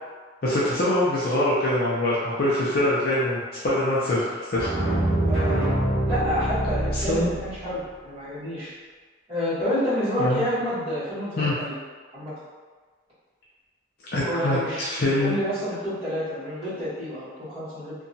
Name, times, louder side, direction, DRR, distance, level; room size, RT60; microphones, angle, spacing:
voice 1, 0.4-4.7 6.9-7.3 10.2-10.5 11.4-11.5 14.1-15.4, left 1 dB, 50° left, -8 dB, 0.4 m, -24 dB
sound 1, 4.6-7.7, right 1 dB, 5° left, 1.1 m, -25 dB
voice 2, 5.3-5.7 6.1-8.7 9.3-11.7 12.1-12.3 14.2-14.8 15.2-17.9, equal, 30° right, -12 dB, 1.4 m, -29 dB
2.8 x 2.2 x 2.6 m, 1.5 s
head